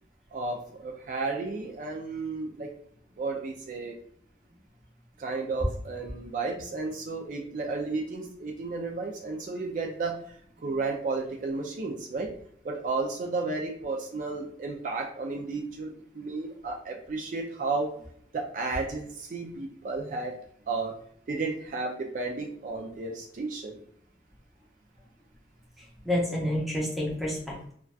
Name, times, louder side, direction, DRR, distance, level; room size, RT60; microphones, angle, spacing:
voice 1, 0.3-2.7 3.2-4.0 5.2-12.3 12.6-17.9 18.3-20.3 20.7-20.9 21.3-23.8, right 3 dB, 45° right, 1 dB, 0.3 m, -33 dB
voice 2, 25.8-27.7, left 1 dB, ahead, -4 dB, 0.6 m, -29 dB
2.5 x 2.2 x 2.3 m, 0.63 s
head